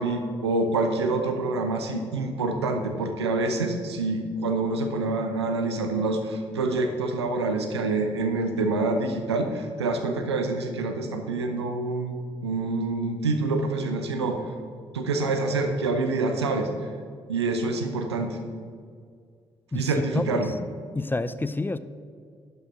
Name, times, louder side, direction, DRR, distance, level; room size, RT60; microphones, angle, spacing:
voice 1, 0.0-12.2 12.4-14.5 14.9-16.9 17.3-18.4 19.7-20.5, right 3 dB, 90° right, 5 dB, 0.7 m, -26 dB
voice 2, 19.7-20.5 20.9-21.8, left 2 dB, 15° left, 13 dB, 0.5 m, -28 dB
11.0 x 5.5 x 5.8 m, 2.1 s
figure-of-eight pair, 40°, 13 cm